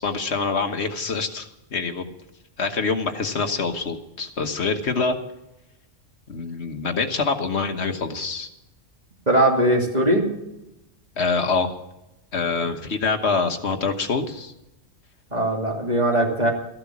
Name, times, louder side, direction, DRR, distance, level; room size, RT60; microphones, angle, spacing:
voice 1, 0.0-2.1 2.6-5.2 6.3-8.5 11.2-11.8 12.3-14.5, left 4 dB, 60° left, 6 dB, 1.5 m, -25 dB
voice 2, 9.3-10.3 12.6-12.7 15.3-16.5, right 1 dB, 35° right, 0 dB, 2.6 m, -20 dB
14.5 x 11.5 x 7.3 m, 0.90 s
omnidirectional pair, 1.3 m